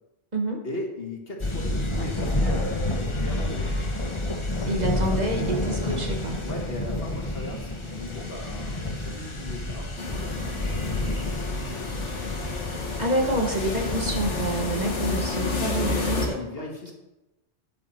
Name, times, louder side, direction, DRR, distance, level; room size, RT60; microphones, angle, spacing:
voice 1, 0.6-3.8 4.8-5.3 6.4-10.6 10.9-12.3 15.1-15.2 16.4-16.9, left 1 dB, 55° left, 1 dB, 2.0 m, -38 dB
sound 1, 1.4-16.3, left 1 dB, 25° left, 1.1 m, -30 dB
voice 2, 4.7-6.4 12.1-12.4 13.0-16.7, right 1 dB, 40° right, 1 dB, 1.6 m, -28 dB
sound 2, 10.0-16.3, left 3 dB, 90° left, 1.8 m, -30 dB
11.5 x 8.0 x 4.5 m, 0.99 s
omnidirectional pair, 1.2 m